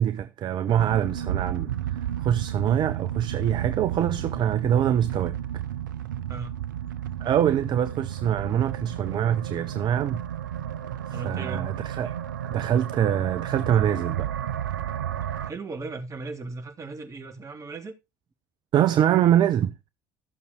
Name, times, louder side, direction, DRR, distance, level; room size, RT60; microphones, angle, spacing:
voice 1, 0.0-5.4 7.2-10.2 11.1-12.2 12.5-14.3 18.7-19.8, right 10 dB, 50° right, 0.8 m, -24 dB
sound 1, 0.7-15.5, right 11 dB, 85° right, 0.7 m, -32 dB
voice 2, 11.1-11.7 15.4-18.0, right 3 dB, 30° right, 3.2 m, -37 dB
15.0 x 6.8 x 4.3 m
hypercardioid pair, 60°, 10 cm